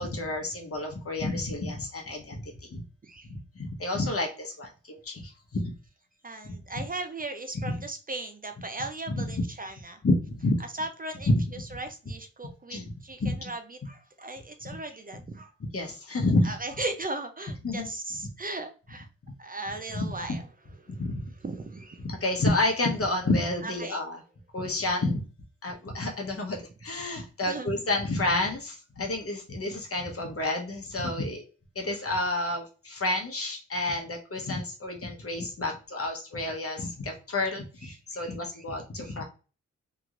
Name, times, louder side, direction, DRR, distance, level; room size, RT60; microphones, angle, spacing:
voice 1, 0.0-2.8 3.2-5.8 6.4-6.8 7.6-7.7 9.1-9.4 10.0-10.6 11.3-11.8 12.7-12.9 13.2-13.4 15.7-16.6 17.6-17.9 19.9-20.1 20.9-21.3 22.0-24.2 24.5-25.2 25.6-31.4 31.7-39.2, left 2 dB, 50° left, 2 dB, 1.0 m, -30 dB
voice 2, 6.2-10.0 10.8-11.3 11.7-15.5 16.4-19.1 19.4-20.4 20.8-21.0 21.4-22.0 23.6-24.0 27.5-27.8 37.8-38.6 39.0-39.1, right 2 dB, 30° right, 6 dB, 0.5 m, -37 dB
2.9 x 2.9 x 2.5 m, 0.35 s
cardioid pair, 50°, 30 cm